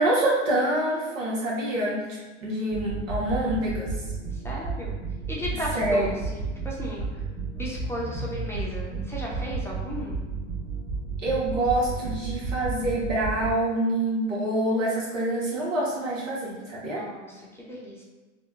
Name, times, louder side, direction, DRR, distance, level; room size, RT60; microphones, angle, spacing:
voice 1, 0.0-3.9 5.7-6.1 11.2-17.0, right 1 dB, 85° right, -5 dB, 1.1 m, -26 dB
sound 1, 2.7-13.5, right 4 dB, 25° right, 0.8 m, -32 dB
voice 2, 4.3-5.0 5.3-7.2 7.5-10.2 16.8-18.0, equal, 5° left, -4 dB, 0.5 m, -35 dB
4.0 x 2.2 x 2.3 m, 1.3 s
hypercardioid pair, 95°, 37 cm